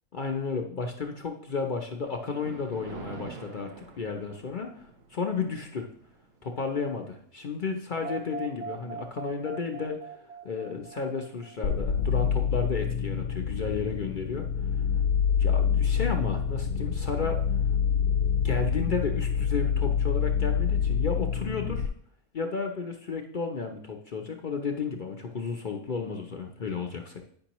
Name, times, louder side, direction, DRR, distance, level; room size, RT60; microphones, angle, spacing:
voice 1, 0.1-3.7 4.0-5.9 6.4-10.0 10.4-14.5 15.4-17.4 18.4-21.9 22.3-27.2, left 5 dB, 50° left, 3 dB, 0.6 m, -33 dB
Thunder, 2.0-10.6 11.1-11.3 12.0-12.1 12.5-12.6 14.7-15.0 15.3-15.4 15.6-21.6, right 5 dB, 75° right, 1.3 m, -51 dB
sound 1, 8.0-12.0, right 6 dB, 55° right, 1.7 m, -41 dB
sound 2, 11.6-21.9, left 7 dB, 75° left, 1.0 m, -26 dB
9.8 x 5.3 x 3.0 m, 0.63 s
omnidirectional pair, 1.5 m